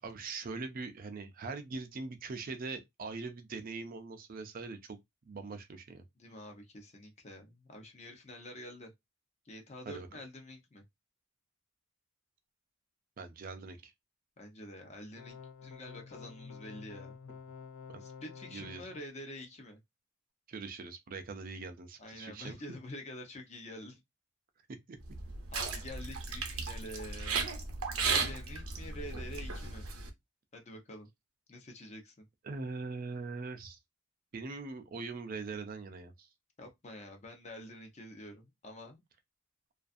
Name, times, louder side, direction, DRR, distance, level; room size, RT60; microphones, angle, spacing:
voice 1, 0.0-5.0 5.3-6.0 9.9-10.1 13.2-13.9 17.9-18.0 18.5-18.9 20.5-22.6 24.9-25.0 32.4-33.8 34.3-36.3, right 4 dB, 40° right, 0.4 m, -42 dB
voice 2, 6.2-8.9 9.5-10.8 14.4-17.2 18.0-19.8 22.0-24.0 25.5-27.4 28.0-29.9 30.5-31.1 31.5-32.3 36.6-39.0, left 1 dB, 30° left, 0.6 m, -47 dB
sound 1, 15.2-19.1, left 5 dB, 75° left, 0.4 m, -49 dB
sound 2, 25.0-30.1, right 4 dB, 80° right, 0.6 m, -35 dB
2.4 x 2.4 x 2.5 m
head